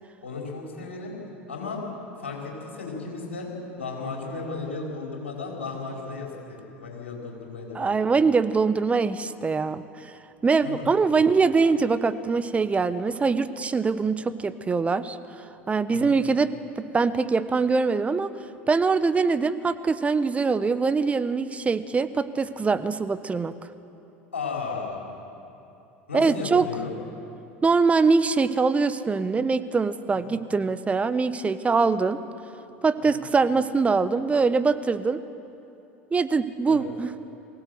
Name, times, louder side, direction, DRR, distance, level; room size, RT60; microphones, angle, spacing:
voice 1, 0.2-1.1 1.5-1.8 2.2-3.5 3.8-7.9 10.6-11.2 15.9-16.2 24.3-25.0 26.1-26.9 30.1-30.4 33.0-33.2 36.7-36.9, left 4 dB, 85° left, -2 dB, 4.7 m, -35 dB
voice 2, 7.7-10.1 10.4-15.2 15.7-18.3 18.7-23.6 26.1-26.7 27.6-32.2 32.8-35.2 36.1-37.1, right 4 dB, 20° right, 12 dB, 1.0 m, -23 dB
23.5 x 16.5 x 7.9 m, 2.8 s
hypercardioid pair, 75°, 6 cm